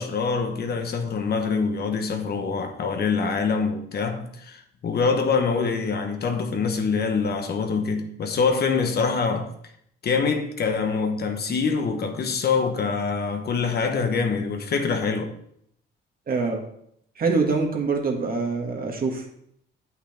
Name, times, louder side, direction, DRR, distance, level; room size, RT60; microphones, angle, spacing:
voice 1, 0.0-9.5 10.0-15.4, left 5 dB, 55° left, 1.2 m, -25 dB
voice 2, 16.3-16.6 17.2-19.2, right 4 dB, 45° right, 1.9 m, -24 dB
8.1 x 5.9 x 4.4 m
cardioid pair, 90°, 20 cm